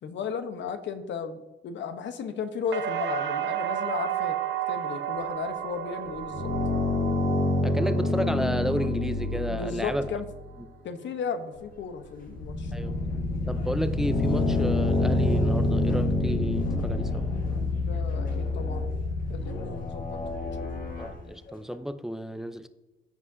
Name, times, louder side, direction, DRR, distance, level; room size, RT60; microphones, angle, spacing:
voice 1, 0.0-4.4 4.7-6.5 9.5-10.3 10.8-12.7 17.8-18.9 19.3-20.7, left 6 dB, 65° left, 1.0 m, -35 dB
sound 1, 2.7-10.6 11.0-11.7, right 11 dB, 70° right, 0.6 m, -33 dB
sound 2, 6.1-10.6 11.6-11.7 12.1-21.1, left 2 dB, 80° left, 2.2 m, -27 dB
voice 2, 7.6-10.0 12.7-13.0 13.5-17.3 21.0-22.7, equal, ahead, 0.5 m, -32 dB
sound 3, 11.3-11.8 12.2-12.3 12.5-21.8, left 2 dB, 45° left, 1.6 m, -43 dB
15.5 x 5.3 x 2.7 m
cardioid pair, 90°, 20 cm